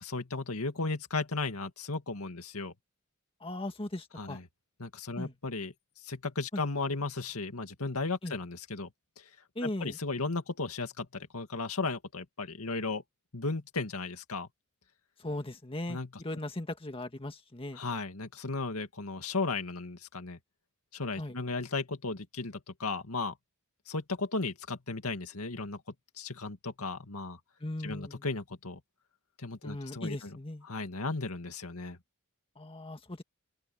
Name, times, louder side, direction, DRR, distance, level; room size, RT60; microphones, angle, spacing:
voice 1, 0.0-2.7 4.2-4.4 4.8-5.7 6.0-8.9 9.2-9.3 9.6-13.0 13.3-14.5 15.9-16.1 17.8-20.4 20.9-23.3 23.9-25.8 26.2-27.4 27.8-28.8 29.4-30.4 30.7-32.0, left 3 dB, 90° left, 2.2 m, -35 dB
voice 2, 3.4-4.4 5.2-5.3 6.5-6.6 8.2-8.4 9.6-10.0 15.2-17.8 21.2-21.4 27.6-28.3 29.6-30.7 32.6-33.2, left 1 dB, 25° left, 1.8 m, -38 dB
open air
head